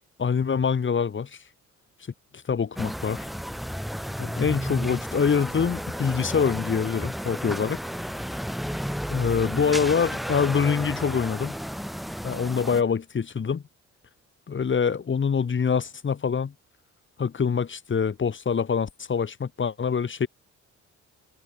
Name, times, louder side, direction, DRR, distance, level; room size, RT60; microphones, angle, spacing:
voice 1, 0.2-1.4 2.5-3.3 4.2-7.8 9.1-11.6 12.2-13.6 14.5-16.5 17.2-20.3, left 6 dB, 40° left, 3.4 m, -25 dB
sound 1, 2.8-12.8, equal, ahead, 2.1 m, -32 dB
cardioid pair, 90°, 30 cm